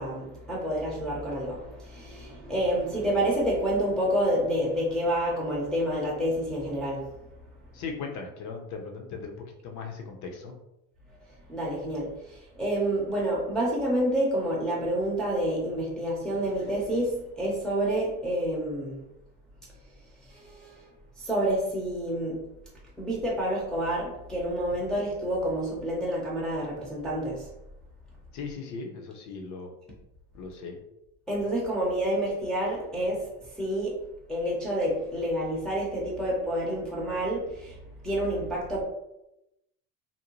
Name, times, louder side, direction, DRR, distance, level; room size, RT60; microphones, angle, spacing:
voice 1, 0.0-7.2 11.3-19.0 20.2-20.8 21.2-22.5 23.0-27.5 31.3-34.0 34.3-37.8 38.0-38.8, right 1 dB, ahead, -6 dB, 0.6 m, -28 dB
voice 2, 7.7-10.5 28.3-29.7 30.3-30.8, left 4 dB, 50° left, 3 dB, 0.7 m, -38 dB
2.6 x 2.0 x 2.9 m, 0.88 s
supercardioid pair, 115°, 38 cm